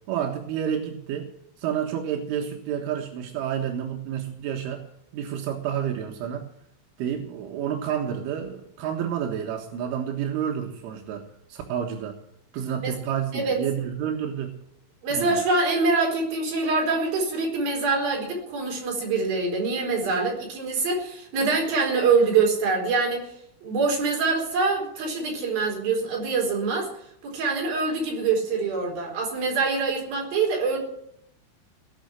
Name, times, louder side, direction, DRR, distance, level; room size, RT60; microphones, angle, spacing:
voice 1, 0.1-1.3 1.6-4.9 5.1-6.5 7.0-12.2 12.5-14.5 15.1-15.4, right 9 dB, 85° right, 2 dB, 4.0 m, -29 dB
voice 2, 15.0-23.3 23.6-26.9 27.2-30.8, right 4 dB, 50° right, 0 dB, 5.9 m, -24 dB
19.0 x 6.5 x 9.8 m, 0.73 s
omnidirectional pair, 5.5 m